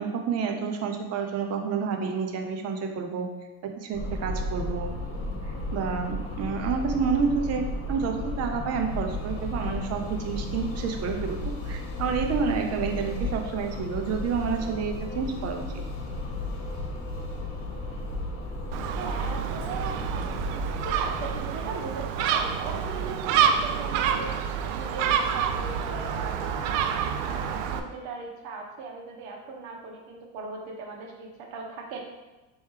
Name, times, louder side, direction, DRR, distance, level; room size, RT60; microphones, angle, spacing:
voice 1, 0.0-3.3 3.8-4.9 5.3-15.6, right 6 dB, 40° right, 4 dB, 0.6 m, -29 dB
sound 1, 3.9-21.4, left 1 dB, 60° left, 1.3 m, -34 dB
Gull seagull, 18.7-27.8, right 8 dB, 85° right, 0.5 m, -28 dB
voice 2, 18.8-32.0, right 4 dB, 65° right, 0 dB, 1.1 m, -39 dB
4.4 x 3.1 x 3.3 m, 1.1 s
supercardioid pair, 125°, 39 cm